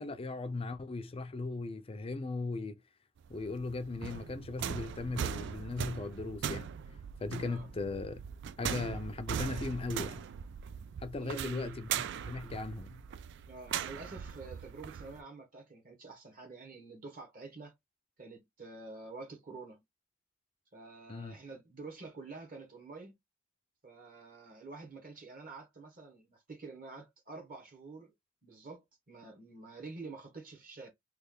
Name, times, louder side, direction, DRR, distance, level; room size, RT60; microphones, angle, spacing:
voice 1, 0.0-2.8 3.3-6.7 7.2-8.2 8.6-10.2 11.0-11.9 12.3-13.0 21.1-21.4, left 3 dB, 30° left, 0.4 m, -38 dB
sound 1, 3.2-15.2, right 8 dB, 60° right, 0.3 m, -40 dB
voice 2, 11.2-11.9 13.5-17.7 18.2-19.8 20.7-23.1 23.8-28.1 28.4-30.9, right 3 dB, 45° right, 1.1 m, -48 dB
3.2 x 2.3 x 3.6 m
head